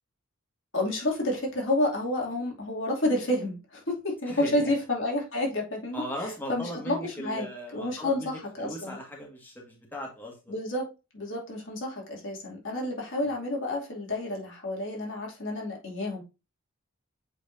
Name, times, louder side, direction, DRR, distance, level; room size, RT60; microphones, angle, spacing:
voice 1, 0.7-6.0 6.5-7.5 7.7-9.0 10.5-16.2, left 1 dB, 55° left, 2.5 m, -30 dB
voice 2, 4.3-4.7 5.9-10.5 13.2-13.3, equal, 10° left, 1.7 m, -38 dB
7.8 x 4.8 x 2.6 m
head